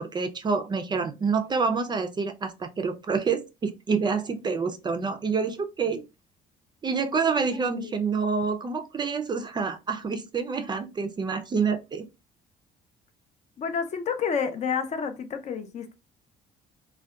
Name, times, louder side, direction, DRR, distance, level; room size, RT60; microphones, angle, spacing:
voice 1, 0.0-6.0 6.8-12.1, right 5 dB, 25° right, 0.3 m, -27 dB
voice 2, 7.5-8.0 13.6-15.9, left 6 dB, 45° left, 0.4 m, -30 dB
2.6 x 2.1 x 2.2 m
cardioid pair, 110°, 17 cm